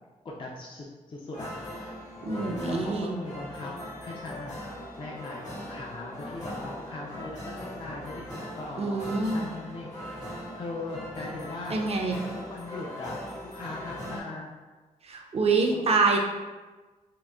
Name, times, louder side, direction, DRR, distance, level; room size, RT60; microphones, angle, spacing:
voice 1, 0.2-1.5 1.8-3.7 4.0-4.6 5.0-8.2 8.6-10.0 10.5-11.8 12.3-13.2 13.5-14.5 15.7-16.0, left 2 dB, 40° left, -3 dB, 0.4 m, -39 dB
sound 1, 1.3-14.2, left 1 dB, 55° left, 1.3 m, -40 dB
voice 2, 2.2-3.2 8.8-9.5 11.7-12.2 15.0-16.2, right 3 dB, 45° right, 1 dB, 0.5 m, -26 dB
3.7 x 2.0 x 2.2 m, 1.3 s
cardioid pair, 60°, 14 cm